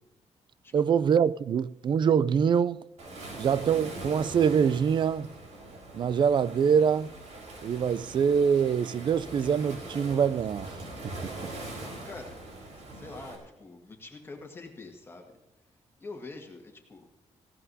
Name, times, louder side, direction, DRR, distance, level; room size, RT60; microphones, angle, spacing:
voice 1, 0.7-2.8 3.4-5.3 5.9-7.1 7.6-10.7 11.2-11.3, right 7 dB, 40° right, 0.4 m, -24 dB
Waves surf, 3.0-13.4, right 2 dB, 75° right, 4.5 m, -42 dB
voice 2, 12.0-12.4 12.9-15.4 16.0-17.1, left 3 dB, 20° left, 1.8 m, -45 dB
19.5 x 16.5 x 2.7 m
wide cardioid pair, 165°, 12 cm